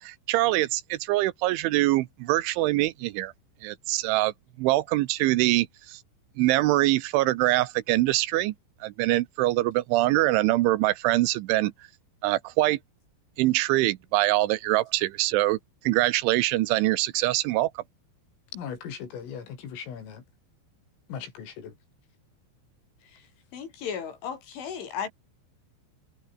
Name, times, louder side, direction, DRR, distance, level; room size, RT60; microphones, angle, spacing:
voice 1, 0.0-3.3 3.6-6.0 6.4-8.5 8.8-11.7 12.2-12.8 13.4-15.6 15.8-17.8, right 17 dB, 80° right, 3.2 m, -24 dB
voice 2, 18.5-20.2 21.1-21.7, left 7 dB, 90° left, 7.2 m, -38 dB
voice 3, 23.5-25.1, left 7 dB, 70° left, 6.9 m, -35 dB
omnidirectional pair, 5.7 m